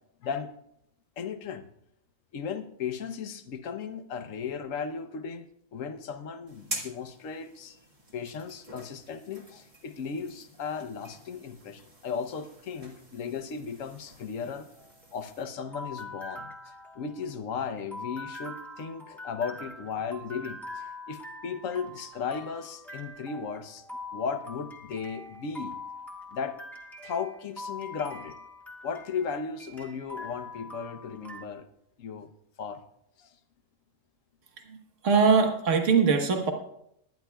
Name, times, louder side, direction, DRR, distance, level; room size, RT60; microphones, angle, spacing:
voice 1, 1.2-1.7 2.3-7.8 8.1-14.7 15.1-23.8 24.1-25.8 26.3-26.6 27.0-28.4 28.8-31.7 32.0-32.3 32.6-32.8 33.2-33.3, left 6 dB, 70° left, 10 dB, 1.2 m, -36 dB
sound 1, 6.5-15.4, right 1 dB, 25° right, 1.7 m, -46 dB
sound 2, 14.8-31.4, left 2 dB, ahead, 1.5 m, -43 dB
voice 2, 35.0-36.5, right 5 dB, 65° right, 4 dB, 1.6 m, -22 dB
21.0 x 10.5 x 2.3 m, 0.75 s
omnidirectional pair, 1.4 m